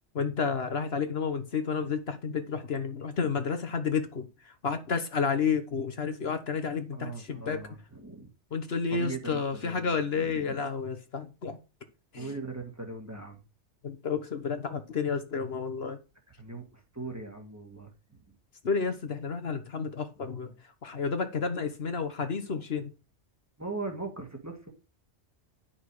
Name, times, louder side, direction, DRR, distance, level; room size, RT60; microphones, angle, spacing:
voice 1, 0.1-7.6 8.5-11.6 12.1-12.3 13.8-16.0 18.6-20.5 20.8-22.9, left 5 dB, 60° left, 1.3 m, -31 dB
voice 2, 6.9-8.3 8.9-10.6 12.1-13.4 16.4-17.9 23.6-24.7, right 3 dB, 15° right, 1.9 m, -39 dB
11.0 x 6.0 x 4.8 m
omnidirectional pair, 1.2 m